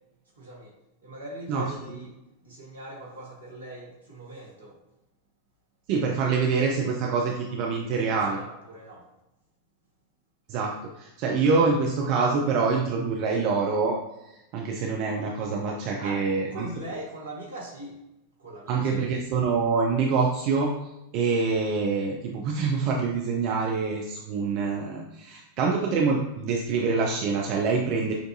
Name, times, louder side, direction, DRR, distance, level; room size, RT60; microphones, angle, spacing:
voice 1, 0.3-0.7 1.0-4.8 8.0-9.1 15.9-18.0 18.4-19.1, right 1 dB, 75° right, -4 dB, 1.4 m, -41 dB
voice 2, 5.9-8.4 10.5-14.0 14.5-16.7 18.7-20.7 21.1-28.1, right 4 dB, 45° right, 0 dB, 0.5 m, -25 dB
6.7 x 2.6 x 2.7 m, 0.92 s
figure-of-eight pair, 90°, 0 cm